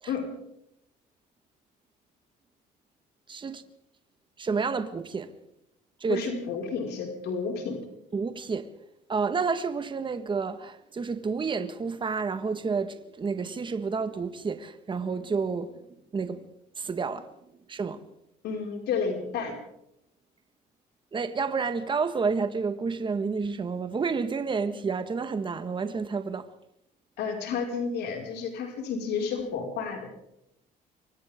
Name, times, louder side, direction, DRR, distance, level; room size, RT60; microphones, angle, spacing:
voice 1, 3.3-3.6 4.4-5.3 6.0-6.3 8.1-8.7 9.1-15.8 16.1-16.5 16.8-17.3 17.7-18.0 21.1-26.5, right 5 dB, 30° right, 1.7 m, -30 dB
voice 2, 6.1-7.8 18.4-19.5 27.2-30.1, left 5 dB, 75° left, 5.7 m, -31 dB
28.5 x 24.0 x 3.8 m
cardioid pair, 110°, 17 cm